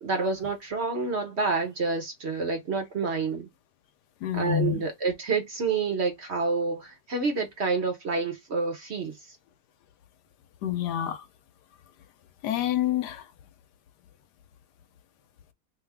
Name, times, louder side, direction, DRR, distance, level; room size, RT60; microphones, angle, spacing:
voice 1, 0.0-3.5 4.3-9.1, right 4 dB, 45° right, 1.1 m, -28 dB
voice 2, 4.2-4.8 10.6-11.2 12.4-13.2, left 10 dB, 75° left, 1.2 m, -27 dB
3.5 x 2.4 x 3.4 m
omnidirectional pair, 1.8 m